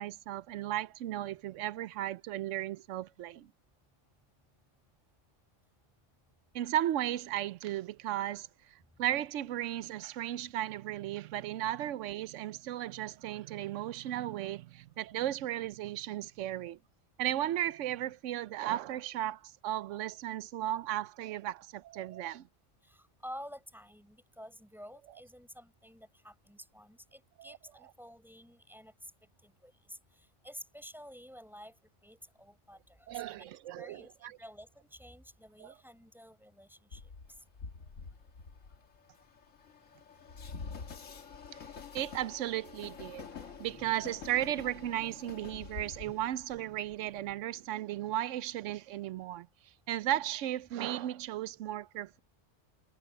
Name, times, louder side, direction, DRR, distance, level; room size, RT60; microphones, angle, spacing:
voice 1, 0.0-3.5 6.5-16.8 17.2-22.5 27.4-27.6 33.1-34.4 35.6-35.7 41.9-49.5 49.9-52.2, right 13 dB, 80° right, 0.9 m, -35 dB
voice 2, 22.8-29.1 29.4-31.7 32.0-37.0 43.8-43.9 46.0-46.1, equal, ahead, 5.6 m, -51 dB
Train, 36.9-47.3, left 5 dB, 90° left, 1.9 m, -47 dB
omnidirectional pair, 1.3 m